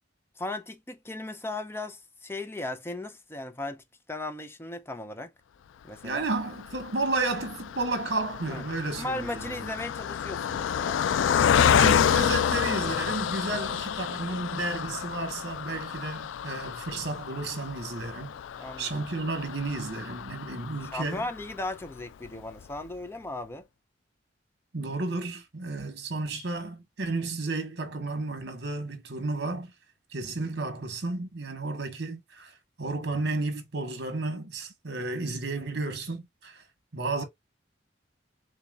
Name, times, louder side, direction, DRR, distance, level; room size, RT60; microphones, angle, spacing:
voice 1, 0.4-5.3 5.8-6.3 8.5-8.6 9.0-11.0 18.6-19.1 20.8-23.7, left 2 dB, 15° left, 0.6 m, -37 dB
voice 2, 6.0-9.7 11.6-18.4 18.8-21.2 24.7-29.7 30.1-36.6 36.9-37.2, right 2 dB, 60° right, 1.6 m, -32 dB
Car passing by, 6.3-21.7 22.3-22.4 22.6-22.8, left 8 dB, 80° left, 0.3 m, -29 dB
6.9 x 2.3 x 2.5 m
head